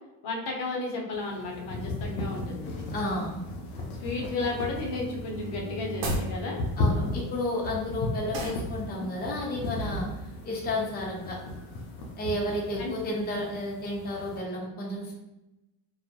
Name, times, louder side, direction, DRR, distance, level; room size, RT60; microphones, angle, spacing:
voice 1, 0.2-2.9 4.0-6.6 12.8-13.0, left 3 dB, 60° left, -1 dB, 0.8 m, -33 dB
sound 1, 1.1-14.4, left 2 dB, 90° left, 0.6 m, -35 dB
voice 2, 2.9-3.4 6.8-10.1 10.4-11.4 12.2-15.1, left 1 dB, 20° left, -3 dB, 0.6 m, -32 dB
Bowed string instrument, 3.2-6.8, right 1 dB, 40° right, 0.7 m, -41 dB
sound 2, 6.0-6.3 8.3-8.7, right 2 dB, 70° right, 0.9 m, -31 dB
2.3 x 2.0 x 2.8 m, 0.96 s
supercardioid pair, 90°, 46 cm